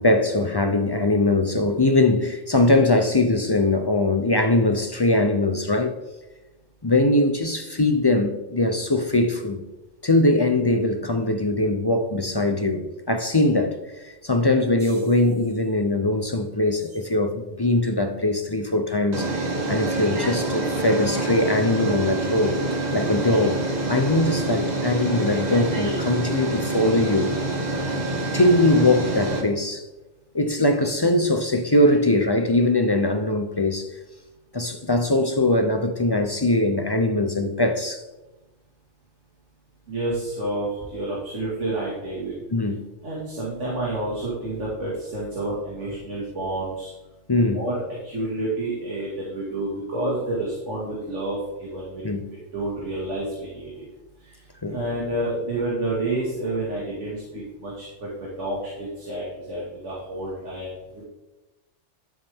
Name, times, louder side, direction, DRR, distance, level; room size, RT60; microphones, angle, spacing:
voice 1, 0.0-6.0 6.8-9.6 10.0-22.5 22.9-23.6 23.9-27.4 28.3-29.8 30.3-33.9 34.5-38.0 42.5-42.8 47.3-47.6 52.0-52.2 54.6-54.8, left 2 dB, 30° left, 0.5 m, -21 dB
sound 1, 14.8-15.2 16.9-17.0 19.1-29.4, right 2 dB, 35° right, 1.6 m, -26 dB
voice 2, 39.9-42.4 43.0-46.9 47.4-52.0 52.3-53.8 54.2-61.1, right 2 dB, 80° right, 2.4 m, -29 dB
11.5 x 7.2 x 3.6 m
omnidirectional pair, 1.2 m